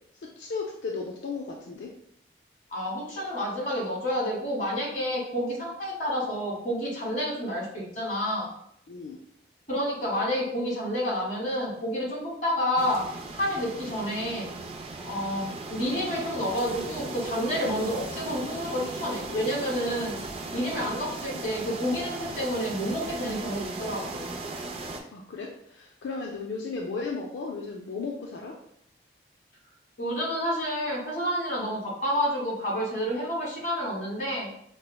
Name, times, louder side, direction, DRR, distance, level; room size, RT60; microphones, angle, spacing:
voice 1, 0.4-1.9 8.9-9.2 20.8-21.0 25.1-28.5, left 4 dB, 80° left, -1 dB, 0.4 m, -35 dB
voice 2, 2.7-8.5 9.7-13.0 13.3-14.5 15.0-20.2 20.5-24.3 30.0-34.5, equal, 45° left, -4 dB, 1.3 m, -29 dB
sound 1, 12.8-25.0, right 2 dB, 30° right, 0.3 m, -37 dB
5.3 x 2.0 x 2.2 m, 0.72 s
head